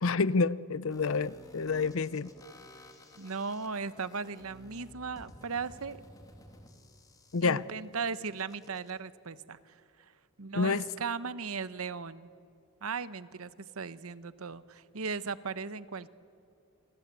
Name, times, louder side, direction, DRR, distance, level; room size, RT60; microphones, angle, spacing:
voice 1, 0.0-2.3 7.3-7.6 10.5-10.8, left 4 dB, 65° left, 0.6 m, -28 dB
sound 1, 0.9-8.9, left 1 dB, 15° left, 2.7 m, -54 dB
voice 2, 3.2-6.0 7.4-9.8 10.4-12.3 12.8-16.1, right 5 dB, 75° right, 1.0 m, -37 dB
28.5 x 24.5 x 8.2 m
head